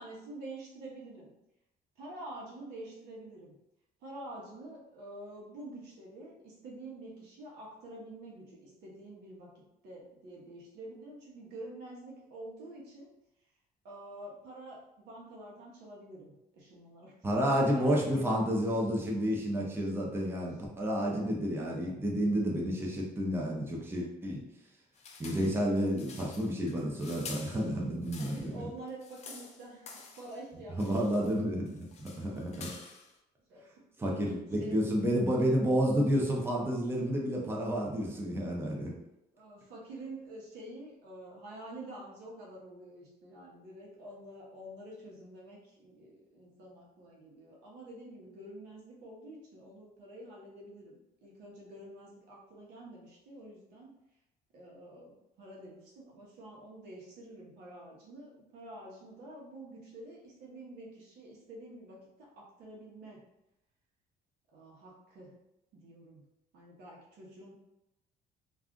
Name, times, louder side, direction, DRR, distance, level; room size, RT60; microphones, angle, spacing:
voice 1, 0.0-1.3 2.0-3.5 4.0-13.1 13.8-17.1 17.7-18.4 20.9-21.3 27.5-27.6 28.2-31.1 33.5-33.6 34.0-34.2 34.6-34.8 39.3-54.0 54.5-63.2 64.5-65.3 65.7-66.2 66.5-67.5, right 1 dB, 80° right, -3 dB, 1.0 m, -48 dB
voice 2, 17.2-24.4 25.2-28.7 30.8-32.7 34.0-38.9, equal, 15° right, -3 dB, 0.6 m, -30 dB
sound 1, 24.9-28.6 28.9-30.4 30.8-31.4 31.7-33.2, left 4 dB, 40° left, 0.5 m, -49 dB
2.5 x 2.3 x 3.6 m, 0.89 s
cardioid pair, 110°, 17 cm